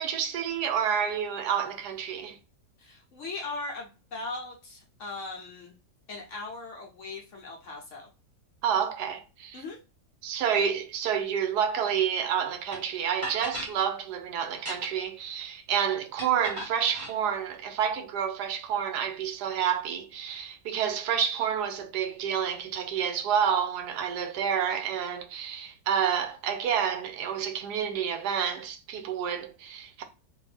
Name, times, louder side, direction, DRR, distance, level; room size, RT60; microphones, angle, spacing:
voice 1, 0.0-2.4 8.6-9.6 10.2-30.0, right 8 dB, 75° right, 1.1 m, -29 dB
voice 2, 2.8-5.7 6.1-8.1 9.5-9.8, left 3 dB, 55° left, 1.0 m, -39 dB
sound 1, 12.7-12.8 13.2-13.7 14.5-15.1 16.2-17.1, right 1 dB, 25° right, 0.8 m, -37 dB
3.3 x 2.6 x 3.3 m
omnidirectional pair, 1.8 m